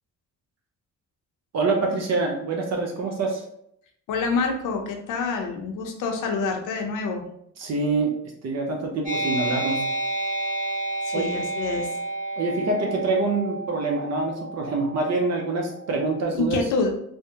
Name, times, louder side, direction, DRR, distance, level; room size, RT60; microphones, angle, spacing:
voice 1, 1.5-3.4 7.6-8.1 8.4-9.8 11.1-11.3 12.4-16.6, right 3 dB, 60° right, 1 dB, 0.7 m, -25 dB
voice 2, 4.1-7.2 11.0-11.9 16.3-16.9, left 4 dB, 85° left, 3 dB, 0.7 m, -27 dB
sound 1, 9.0-16.1, right 2 dB, 25° right, 1.4 m, -30 dB
3.4 x 2.1 x 2.8 m, 0.72 s
cardioid pair, 90°, 30 cm